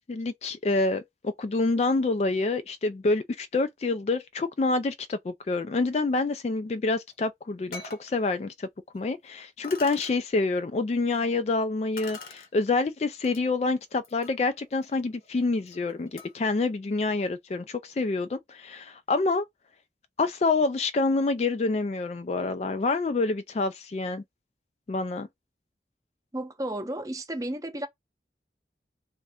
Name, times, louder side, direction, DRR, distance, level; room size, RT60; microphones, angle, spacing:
voice 1, 0.1-8.7 8.9-19.4 20.2-24.2 24.9-25.3, left 3 dB, 35° left, 0.3 m, -27 dB
sound 1, 7.1-7.2 7.7-8.1 8.9-9.0 9.6-10.2 12.0-12.5 13.2-13.4 13.9-16.5, left 4 dB, 55° left, 0.9 m, -45 dB
voice 2, 26.3-27.9, right 1 dB, 20° right, 0.6 m, -33 dB
3.3 x 2.5 x 3.4 m
head